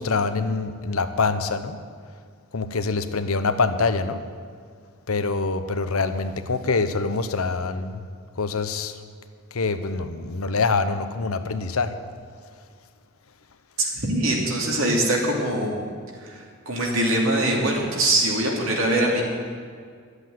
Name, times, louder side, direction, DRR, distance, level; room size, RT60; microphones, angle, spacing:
voice 1, 0.0-1.8 2.5-4.2 5.1-8.0 8.4-8.9 9.5-12.0, left 4 dB, 85° left, 10 dB, 0.8 m, -25 dB
voice 2, 13.8-15.8 16.2-19.2, right 1 dB, 70° right, -1 dB, 2.7 m, -23 dB
12.0 x 8.1 x 9.2 m, 2.1 s
head